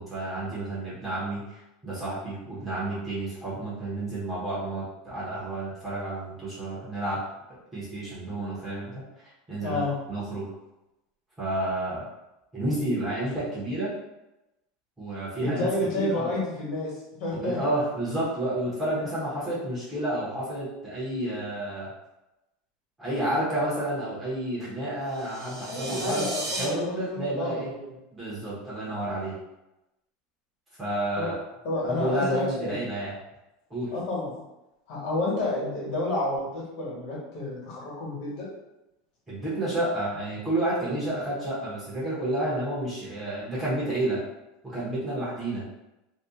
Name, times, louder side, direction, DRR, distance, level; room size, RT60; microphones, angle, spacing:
voice 1, 0.0-7.2 7.7-9.0 9.5-9.8 10.1-10.5 11.4-12.1 12.5-13.9 15.0-15.7 15.9-16.3 17.3-21.9 23.0-26.3 26.6-27.7 28.1-29.3 30.8-31.4 31.8-33.1 33.7-33.9 39.3-44.2 44.6-45.6, right 1 dB, 10° right, -10 dB, 1.0 m, -30 dB
voice 2, 9.6-9.9 15.4-17.6 18.9-19.0 25.7-27.9 31.2-31.3 31.6-32.8 33.9-34.3 34.9-38.5, left 2 dB, 45° left, -5 dB, 1.4 m, -30 dB
sound 1, 25.1-26.6, right 2 dB, 40° right, 1.3 m, -35 dB
2.7 x 2.4 x 3.6 m, 0.95 s
supercardioid pair, 175°, 0 cm